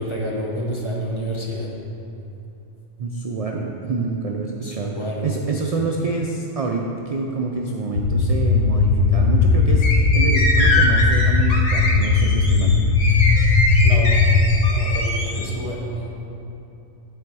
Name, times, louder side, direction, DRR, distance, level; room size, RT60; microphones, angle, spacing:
voice 1, 0.0-1.7 4.6-5.3 13.8-14.3 14.7-16.2, equal, 25° left, -3 dB, 0.9 m, -28 dB
voice 2, 3.0-4.9 5.2-12.8, right 4 dB, 70° right, 0 dB, 0.3 m, -27 dB
sound 1, 8.0-14.7, left 4 dB, 65° left, 0.9 m, -17 dB
sound 2, 9.8-15.4, left 2 dB, 85° left, 1.2 m, -23 dB
9.8 x 4.3 x 4.7 m, 2.8 s
omnidirectional pair, 1.2 m